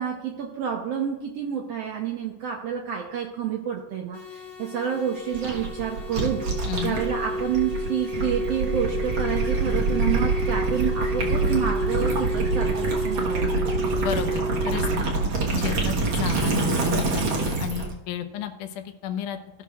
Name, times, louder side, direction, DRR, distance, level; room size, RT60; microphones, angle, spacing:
voice 1, 0.0-6.4 6.8-13.7 15.8-15.9, right 8 dB, 75° right, 1 dB, 1.5 m, -29 dB
sound 1, 4.1-13.1, left 7 dB, 60° left, 2.8 m, -42 dB
Gurgling / Liquid, 5.3-17.9, right 3 dB, 50° right, 1.7 m, -26 dB
sound 2, 6.1-15.2, right 1 dB, 40° left, 0.6 m, -30 dB
voice 2, 6.7-7.0 14.0-15.1 15.5-19.4, left 10 dB, 80° left, 6 dB, 2.2 m, -32 dB
17.0 x 5.9 x 2.3 m, 1.1 s
omnidirectional pair, 3.5 m